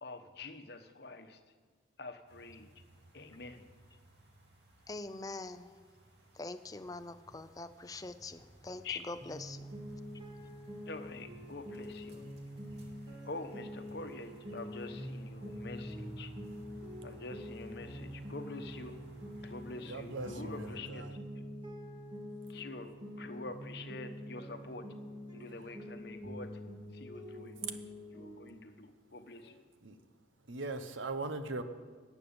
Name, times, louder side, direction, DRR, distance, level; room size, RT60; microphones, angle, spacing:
voice 1, 0.0-1.4 2.0-2.7 3.1-3.7 8.8-9.0 10.9-12.2 13.2-16.3 17.0-19.0 19.4-21.1 22.5-24.9 25.3-26.6 26.9-27.8 28.1-29.6, left 3 dB, 55° left, 8 dB, 1.0 m, -46 dB
sound 1, 2.3-20.7, right 1 dB, 60° right, 2.4 m, -55 dB
voice 2, 4.9-5.8 6.3-9.7, left 2 dB, 20° left, 11 dB, 0.5 m, -44 dB
sound 2, 9.2-28.6, equal, 30° right, 2.3 m, -46 dB
voice 3, 19.9-21.2 29.8-30.0 30.4-31.6, right 3 dB, 85° right, 9 dB, 1.0 m, -40 dB
12.0 x 8.4 x 8.8 m, 1.5 s
head